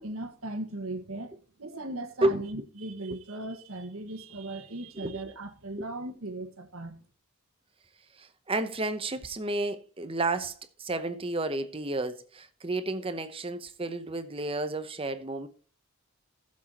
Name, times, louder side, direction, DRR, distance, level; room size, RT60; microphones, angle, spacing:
voice 1, 0.0-1.3 1.6-7.0, right 2 dB, 75° right, 1.6 m, -38 dB
voice 2, 8.1-15.5, right 2 dB, 25° right, 0.8 m, -31 dB
15.5 x 7.4 x 3.0 m
head